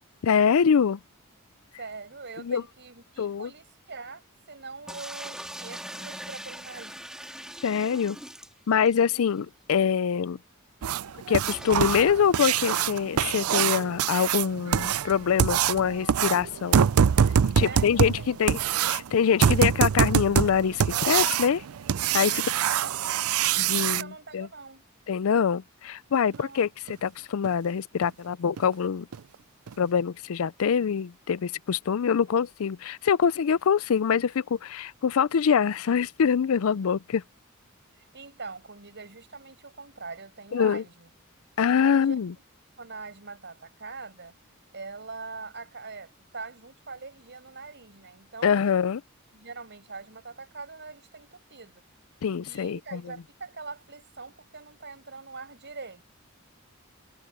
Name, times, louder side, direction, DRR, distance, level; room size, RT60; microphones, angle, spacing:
voice 1, 0.2-1.0 2.4-2.6 3.2-3.5 7.6-8.2 8.7-10.4 11.3-16.8 17.6-18.6 18.9-21.6 22.1-22.4 23.6-24.5 25.1-26.7 27.0-29.1 29.8-37.2 40.5-40.8 41.6-42.3 48.4-49.0 52.2-53.0, left 7 dB, 70° left, 0.4 m, -24 dB
voice 2, 1.8-7.1 9.1-9.3 17.6-18.4 22.3-23.3 23.8-24.8 26.2-26.7 38.0-41.1 41.6-42.2 42.8-44.4 44.7-48.8 49.3-51.8 52.5-56.1, right 4 dB, 55° right, 6.0 m, -43 dB
sound 1, 4.9-9.1 9.4-9.5 9.7-9.8 11.5-11.8, right 1 dB, 5° right, 3.5 m, -41 dB
sound 2, 10.8-24.0 26.3-26.4 26.9-27.0 27.4-27.5 28.0-28.1 28.6-28.7 29.1-29.2 29.7-29.8, right 8 dB, 85° right, 0.5 m, -24 dB
head